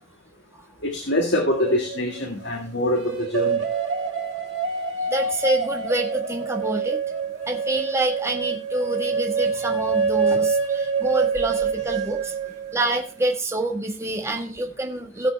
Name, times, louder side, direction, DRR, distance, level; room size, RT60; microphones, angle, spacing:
voice 1, 0.8-3.6, left 1 dB, 60° left, 3 dB, 1.9 m, -24 dB
sound 1, 1.5-2.2 2.9-13.0, right 5 dB, 80° right, 2.6 m, -26 dB
voice 2, 5.1-7.0 7.5-12.3 12.7-15.3, right 2 dB, 15° right, 2 dB, 1.4 m, -26 dB
17.0 x 7.2 x 3.4 m, 0.39 s
head